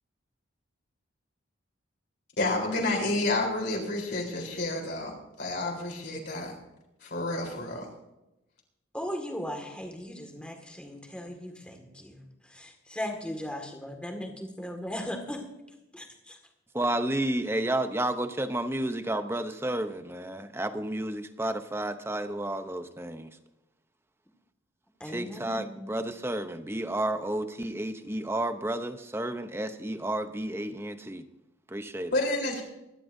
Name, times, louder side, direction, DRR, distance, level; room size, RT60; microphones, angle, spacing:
voice 1, 2.4-6.5 7.0-7.9 32.1-32.6, left 2 dB, 55° left, 0 dB, 3.9 m, -30 dB
voice 2, 8.9-12.2 12.5-15.4 15.9-16.4 25.0-25.9, equal, 5° left, 3 dB, 1.9 m, -37 dB
voice 3, 16.7-23.3 25.0-31.2 31.7-32.1, right 1 dB, 10° right, 9 dB, 0.7 m, -31 dB
24.0 x 11.5 x 2.7 m, 0.92 s
head